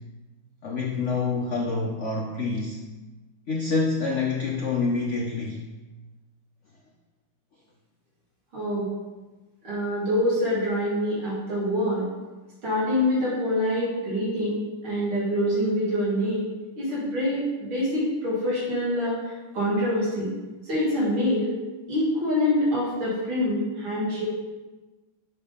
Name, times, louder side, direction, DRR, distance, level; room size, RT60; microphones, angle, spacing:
voice 1, 0.6-2.8 3.5-5.7, left 4 dB, 80° left, -1 dB, 0.6 m, -27 dB
voice 2, 8.5-8.9 9.6-12.1 12.6-16.4 16.8-19.2 19.5-20.3 20.7-21.5 21.9-24.3, left 1 dB, 90° right, -10 dB, 3.3 m, -25 dB
6.7 x 3.6 x 5.4 m, 1.2 s
omnidirectional pair, 2.2 m